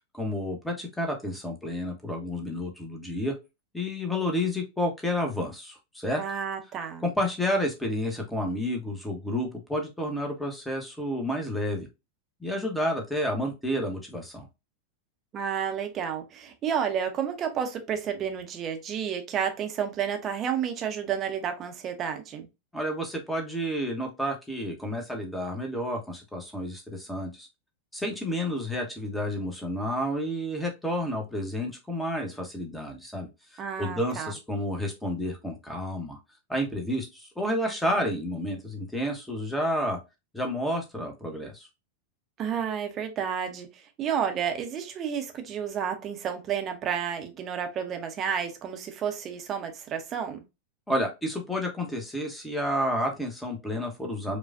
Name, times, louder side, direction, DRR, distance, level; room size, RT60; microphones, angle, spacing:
voice 1, 0.1-3.3 3.7-6.2 7.0-11.9 12.4-14.5 22.7-27.5 27.9-36.2 36.5-40.0 40.3-41.7 50.9-54.4, equal, 5° left, 1.1 m, -30 dB
voice 2, 6.2-7.0 15.3-22.5 33.6-34.3 42.4-50.4, right 8 dB, 30° right, 0.8 m, -31 dB
4.8 x 2.4 x 2.5 m
figure-of-eight pair, 90°, 0 cm